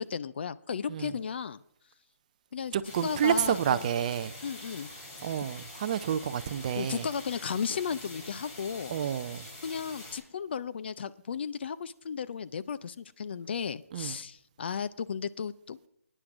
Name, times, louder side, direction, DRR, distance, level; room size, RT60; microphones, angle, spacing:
voice 1, 0.0-1.6 2.5-2.7 3.0-3.8 4.4-4.9 6.7-9.0 9.6-15.8, left 7 dB, 45° left, 0.4 m, -34 dB
voice 2, 2.7-4.3 5.2-7.0 8.9-9.5 13.9-14.1, right 9 dB, 30° right, 0.5 m, -29 dB
sound 1, 2.8-10.2, left 1 dB, 30° left, 3.3 m, -46 dB
22.5 x 9.9 x 2.5 m
figure-of-eight pair, 150°, 8 cm